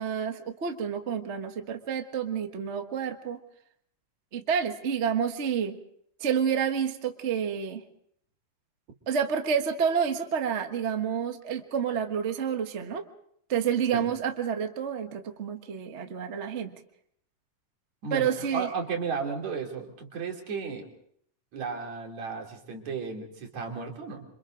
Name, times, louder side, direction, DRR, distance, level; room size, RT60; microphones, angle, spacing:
voice 1, 0.0-3.4 4.3-5.8 6.2-7.8 9.1-13.0 13.5-16.8 18.1-18.7, right 7 dB, 50° right, 5 dB, 0.8 m, -29 dB
voice 2, 18.0-20.9 21.5-24.2, right 5 dB, 65° right, 1 dB, 4.1 m, -34 dB
27.0 x 26.0 x 3.9 m, 0.68 s
omnidirectional pair, 3.5 m